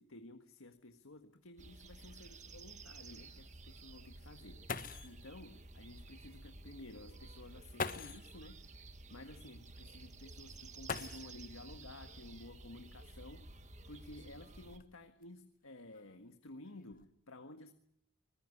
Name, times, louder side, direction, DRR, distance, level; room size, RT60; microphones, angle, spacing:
voice 1, 0.0-8.8 9.1-17.8, left 2 dB, 85° left, 1.6 m, -54 dB
sound 1, 0.8-0.9 1.3-1.4 2.0-2.1 4.3-4.4 4.7-5.2 6.5-6.6 7.7-8.3 10.8-11.6 12.9-13.0 13.8-15.2 15.9-16.3 16.6-17.0, left 4 dB, 40° left, 1.5 m, -43 dB
sound 2, 1.6-14.8, right 2 dB, 35° right, 1.7 m, -53 dB
25.0 x 21.0 x 9.7 m
head